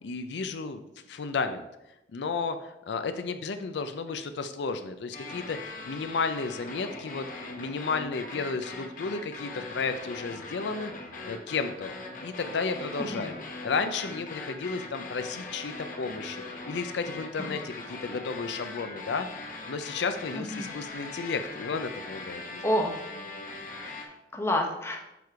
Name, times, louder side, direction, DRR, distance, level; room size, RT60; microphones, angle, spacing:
voice 1, 0.0-0.8 1.1-1.7 2.1-5.6 5.8-10.9 11.2-11.9 12.2-15.7 16.0-19.3 19.7-22.6, left 4 dB, 75° left, 9 dB, 0.4 m, -33 dB
sound 1, 5.1-24.1, left 3 dB, 45° left, 1.0 m, -41 dB
voice 2, 20.4-20.7 22.6-23.0 23.8-25.0, left 1 dB, 15° left, 2 dB, 0.9 m, -29 dB
7.0 x 4.6 x 4.7 m, 0.91 s
head